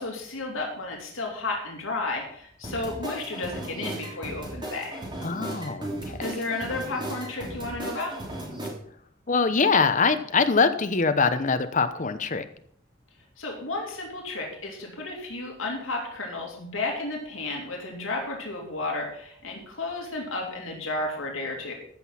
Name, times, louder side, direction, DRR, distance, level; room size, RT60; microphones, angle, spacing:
voice 1, 0.0-5.0 6.2-8.2 13.4-21.7, left 2 dB, 80° left, 0 dB, 2.7 m, -32 dB
sound 1, 2.6-8.7, right 1 dB, 25° right, 3.4 m, -36 dB
voice 2, 5.2-6.2 9.3-12.5, left 4 dB, 40° left, 10 dB, 0.8 m, -23 dB
14.5 x 6.2 x 5.7 m, 0.66 s
head